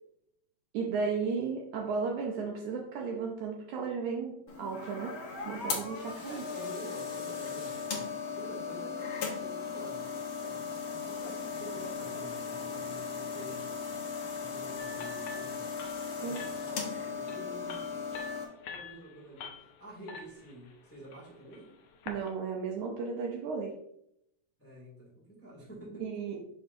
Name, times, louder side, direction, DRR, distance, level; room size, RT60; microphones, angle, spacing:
voice 1, 0.7-5.2 5.5-6.4 16.2-16.4 22.1-23.8 26.0-26.4, right 5 dB, 75° right, 0 dB, 1.9 m, -34 dB
sound 1, 4.5-18.4, left 5 dB, 65° left, 1.2 m, -37 dB
voice 2, 6.2-8.1 8.4-10.0 10.4-10.7 11.0-13.7 14.4-15.7 16.1-18.1 18.7-21.7 24.6-26.0, right 1 dB, 5° left, -5 dB, 1.2 m, -48 dB
sound 2, 14.8-22.3, left 4 dB, 85° left, 1.4 m, -47 dB
6.4 x 5.9 x 2.6 m, 0.76 s
omnidirectional pair, 3.9 m